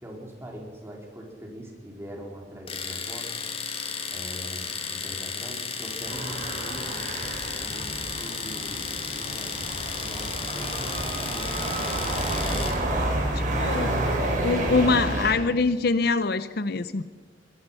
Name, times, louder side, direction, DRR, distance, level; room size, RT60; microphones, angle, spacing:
voice 1, 0.0-3.3 4.1-7.0 7.6-9.6 10.0-11.7 12.3-14.1, equal, 15° right, -1 dB, 4.3 m, -42 dB
Domestic sounds home sounds, 2.7-12.8, left 5 dB, 30° left, 2.1 m, -34 dB
sound 1, 6.0-15.3, right 1 dB, 45° right, 5.6 m, -29 dB
voice 2, 13.6-13.9 14.4-17.0, left 4 dB, 60° left, 13 dB, 0.7 m, -24 dB
23.0 x 22.0 x 5.7 m, 1.4 s
head